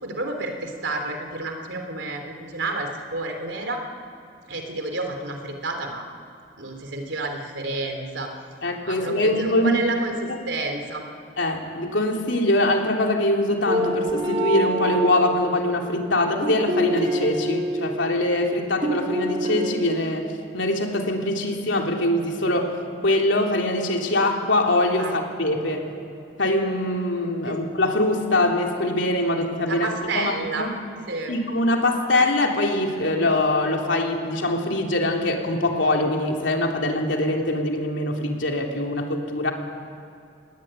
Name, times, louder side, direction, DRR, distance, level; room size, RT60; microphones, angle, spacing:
voice 1, 0.0-3.8 4.5-6.0 6.6-8.3 8.8-11.0 25.0-25.1 27.4-27.6 29.6-30.7 31.1-31.3, right 2 dB, 85° right, 4 dB, 3.4 m, -30 dB
voice 2, 8.6-9.8 11.4-20.3 20.5-22.7 23.0-25.9 26.4-29.9 30.1-30.7 31.3-39.5, left 1 dB, 90° left, 1 dB, 3.4 m, -23 dB
sound 1, 13.7-18.5 18.8-20.0, equal, 30° right, 3.3 m, -27 dB
29.5 x 19.5 x 9.1 m, 2.6 s
head